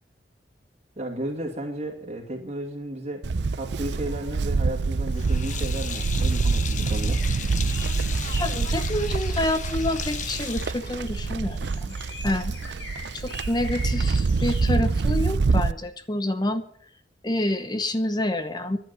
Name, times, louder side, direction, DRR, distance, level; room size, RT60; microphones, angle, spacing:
voice 1, 1.0-3.3 3.5-7.2, right 1 dB, 40° right, 1 dB, 2.3 m, -33 dB
Livestock farm animals working animals, 3.2-15.7, right 4 dB, 70° right, 0.5 m, -26 dB
Sink (filling or washing), 5.1-11.5, left 7 dB, 45° left, 1.1 m, -36 dB
sound 1, 7.1-14.7, left 2 dB, 80° left, 4.8 m, -44 dB
voice 2, 8.4-11.9 12.2-12.5 13.1-16.7 17.2-18.8, left 1 dB, 25° left, 10 dB, 0.8 m, -28 dB
11.0 x 10.5 x 9.2 m, 0.63 s
head